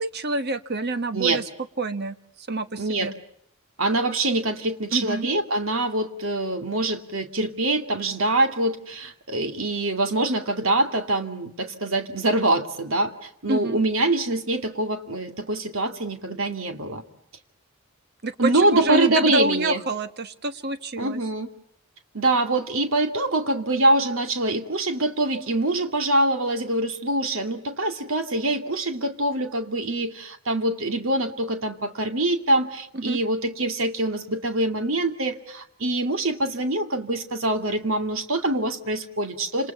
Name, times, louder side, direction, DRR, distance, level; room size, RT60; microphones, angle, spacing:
voice 1, 0.0-1.4 1.8-3.1 4.9-5.3 13.5-13.8 18.2-21.2 32.9-33.2, right 2 dB, 45° right, 11 dB, 1.2 m, -27 dB
voice 2, 2.8-3.1 3.8-17.0 18.4-19.8 21.0-21.5 22.1-39.7, right 2 dB, 65° right, 6 dB, 2.5 m, -24 dB
29.0 x 27.5 x 5.7 m, 0.71 s
head